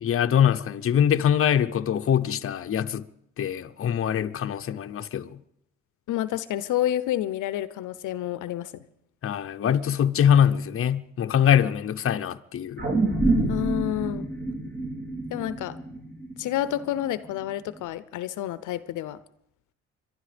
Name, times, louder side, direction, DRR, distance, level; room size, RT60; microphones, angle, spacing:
voice 1, 0.0-3.1 3.4-5.4 9.2-12.8, left 9 dB, 45° left, 0.8 m, -23 dB
voice 2, 6.1-8.7 13.5-14.3 15.3-15.8 16.4-19.2, left 13 dB, 80° left, 0.8 m, -29 dB
sound 1, 12.8-17.3 17.7-17.8, right 2 dB, 35° right, 5.1 m, -27 dB
24.5 x 11.5 x 5.1 m
cardioid pair, 90°, 30 cm